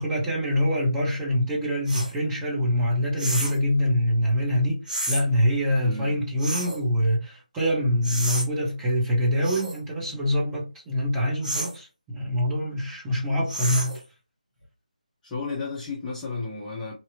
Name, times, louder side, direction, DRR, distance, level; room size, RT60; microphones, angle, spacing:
voice 1, 0.0-14.0, equal, 10° right, 1.0 m, -25 dB
sound 1, 1.9-2.1 3.2-3.6 4.9-5.2 6.4-6.8 8.0-8.5 9.4-9.8 11.4-11.8 13.5-14.0, right 1 dB, 75° right, 1.6 m, -30 dB
voice 2, 5.8-6.2 15.2-16.9, left 4 dB, 10° left, 0.7 m, -33 dB
2.9 x 2.8 x 2.7 m
figure-of-eight pair, 155°, 4 cm